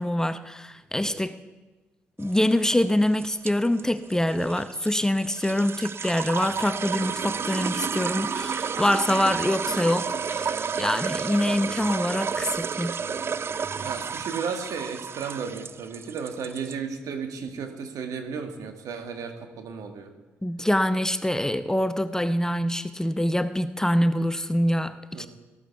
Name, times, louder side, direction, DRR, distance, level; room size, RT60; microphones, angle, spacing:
voice 1, 0.0-1.4 2.2-13.0 20.4-25.3, left 1 dB, 10° left, 11 dB, 0.7 m, -25 dB
sound 1, 2.2-16.7, right 6 dB, 40° right, 0.4 m, -31 dB
voice 2, 13.8-20.1 25.1-25.3, right 6 dB, 65° right, 6 dB, 1.7 m, -34 dB
14.5 x 13.0 x 4.6 m, 1.2 s
hypercardioid pair, 45°, 6 cm